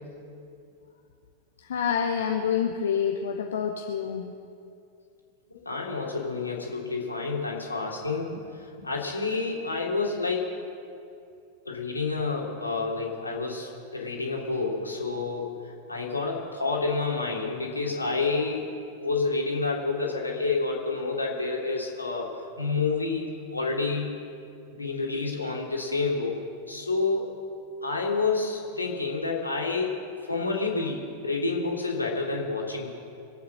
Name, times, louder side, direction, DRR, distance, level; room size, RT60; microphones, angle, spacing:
voice 1, 1.7-4.3, left 7 dB, 65° left, 3 dB, 1.0 m, -27 dB
voice 2, 5.5-10.6 11.6-18.7 19.0-24.2 24.7-26.4 26.7-27.3 27.8-32.9, left 3 dB, 80° left, -2 dB, 2.9 m, -29 dB
24.5 x 8.7 x 6.4 m, 2.5 s
figure-of-eight pair, 90°, 0 cm